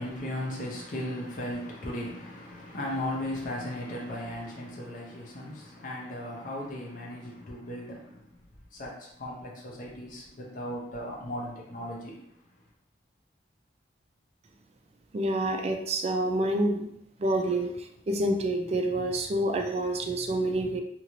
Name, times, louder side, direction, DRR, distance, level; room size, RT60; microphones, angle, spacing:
voice 1, 0.0-8.3 8.7-12.2, left 1 dB, 50° left, 0.7 m, -36 dB
voice 2, 15.1-16.9 17.2-20.8, right 1 dB, 35° right, 0.3 m, -28 dB
2.9 x 2.6 x 2.9 m
head